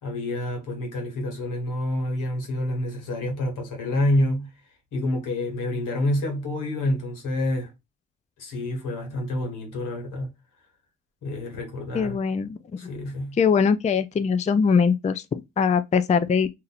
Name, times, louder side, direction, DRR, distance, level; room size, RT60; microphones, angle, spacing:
voice 1, 0.0-4.5 4.9-7.7 8.4-10.3 11.2-12.2 12.8-13.4, left 1 dB, 80° left, 1.5 m, -28 dB
voice 2, 11.9-12.6 13.4-16.5, left 6 dB, 25° left, 0.4 m, -22 dB
2.7 x 2.5 x 4.1 m
supercardioid pair, 55°, 31 cm